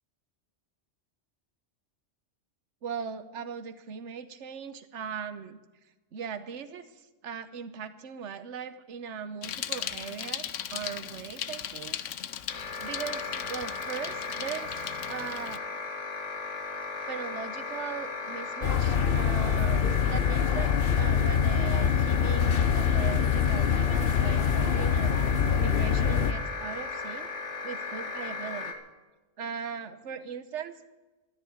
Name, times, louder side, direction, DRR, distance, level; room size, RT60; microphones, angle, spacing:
voice 1, 2.8-5.6 6.1-12.0 12.8-14.8 15.1-15.6 17.1-25.2 25.6-27.3 27.6-28.8 29.4-30.9, right 7 dB, 75° right, 11 dB, 1.3 m, -39 dB
Bicycle, 9.4-15.6, left 10 dB, 85° left, 1.1 m, -38 dB
sound 1, 12.5-28.7, left 4 dB, 70° left, 2.1 m, -36 dB
sound 2, 18.6-26.3, left 7 dB, 55° left, 0.9 m, -25 dB
13.5 x 10.5 x 8.9 m, 1.2 s
omnidirectional pair, 1.2 m